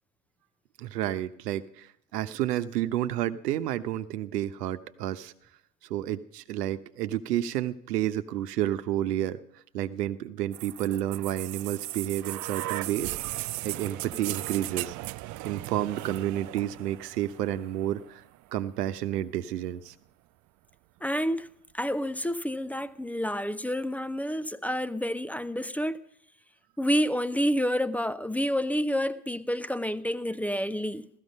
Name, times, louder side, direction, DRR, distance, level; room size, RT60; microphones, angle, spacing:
voice 1, 0.8-5.3 5.9-9.4 9.7-14.9 15.4-18.2 18.5-19.9, right 12 dB, 80° right, 1.1 m, -30 dB
sound 1, 10.5-18.4 19.5-19.6, right 18 dB, 40° right, 0.5 m, -37 dB
voice 2, 21.0-21.5 21.7-26.0 26.8-31.1, equal, 5° left, 0.7 m, -29 dB
16.0 x 14.0 x 5.4 m
hypercardioid pair, 85°, 47 cm